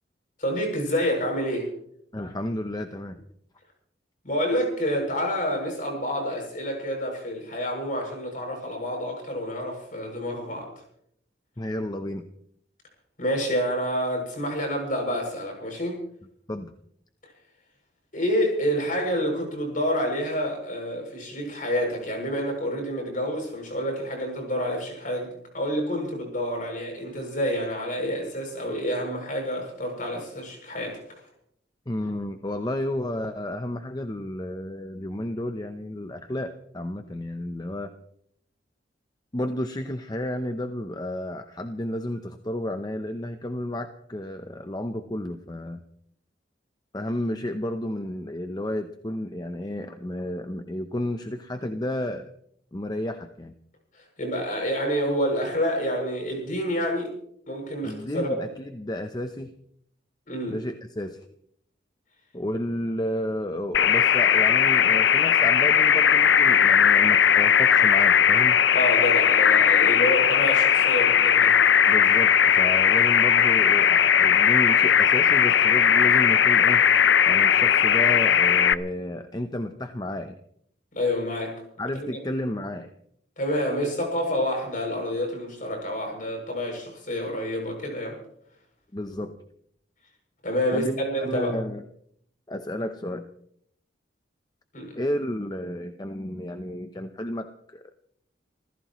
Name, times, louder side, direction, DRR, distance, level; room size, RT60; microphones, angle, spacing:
voice 1, 0.4-1.7 4.2-10.7 13.2-16.0 18.1-31.0 54.2-57.1 57.5-58.4 60.3-60.6 68.7-71.5 81.0-81.6 81.9-82.1 83.4-88.2 90.4-91.6 94.7-95.0, equal, 45° left, 2 dB, 7.1 m, -28 dB
voice 2, 2.1-3.2 11.6-12.3 16.5-16.7 31.9-37.9 39.3-45.8 46.9-52.3 52.7-53.5 57.8-59.5 60.5-61.3 62.3-68.6 71.9-76.8 77.3-80.3 81.8-82.9 88.9-89.4 90.7-91.8 92.5-93.3 95.0-97.9, left 1 dB, 20° left, 7 dB, 0.8 m, -32 dB
sound 1, 63.7-78.7, left 8 dB, 70° left, 0.6 m, -18 dB
27.5 x 15.5 x 3.1 m, 0.68 s
head